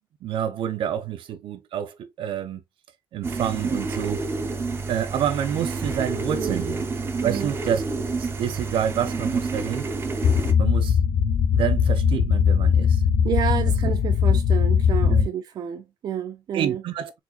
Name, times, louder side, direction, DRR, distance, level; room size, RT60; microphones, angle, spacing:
voice 1, 0.2-2.6 3.1-4.2 4.9-6.9 7.2-7.8 8.2-9.9 10.6-11.0 11.5-13.0 15.0-15.3 16.5-17.1, right 9 dB, 70° right, 0.8 m, -28 dB
sound 1, 3.2-10.5, right 3 dB, 25° right, 0.8 m, -29 dB
voice 2, 6.3-6.6 7.2-7.5 13.2-16.8, right 9 dB, 50° right, 0.4 m, -29 dB
sound 2, 10.2-15.3, left 7 dB, 75° left, 0.7 m, -20 dB
4.4 x 4.3 x 2.4 m
cardioid pair, 175°, 9 cm